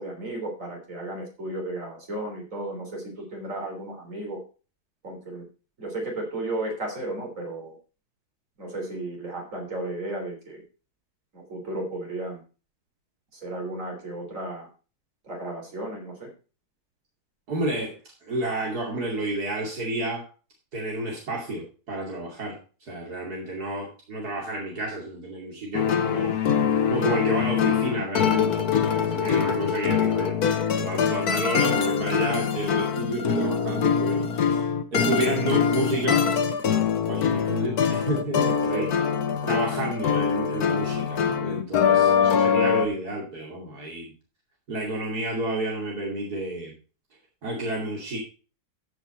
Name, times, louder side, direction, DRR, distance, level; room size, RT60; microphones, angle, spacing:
voice 1, 0.0-4.4 5.0-5.4 5.8-7.8 8.6-10.6 11.3-12.4 13.3-14.7 15.2-16.3 38.7-38.9 39.4-39.5, right 1 dB, 55° right, 1 dB, 3.9 m, -34 dB
voice 2, 17.5-20.2 20.7-22.6 22.9-26.3 26.9-36.2 36.7-38.9 39.5-44.1 44.7-46.7 47.4-48.2, right 2 dB, 75° right, -2 dB, 3.1 m, -30 dB
sound 1, 25.7-42.9, left 7 dB, 75° left, 1.6 m, -23 dB
14.5 x 5.4 x 4.3 m, 0.35 s
omnidirectional pair, 1.7 m